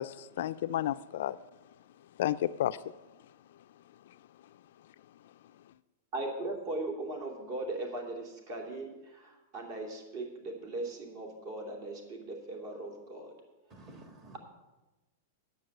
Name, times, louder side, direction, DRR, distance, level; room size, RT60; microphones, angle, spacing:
voice 1, 0.0-1.4 2.1-3.0 3.5-3.6 4.0-4.5 4.8-4.9 5.2-5.4 5.6-5.7, left 12 dB, 65° left, 0.4 m, -33 dB
voice 2, 6.1-13.3, right 2 dB, 45° right, 2.8 m, -39 dB
voice 3, 13.7-14.4, right 2 dB, 25° right, 1.9 m, -51 dB
9.4 x 7.2 x 7.7 m
supercardioid pair, 155°, 0 cm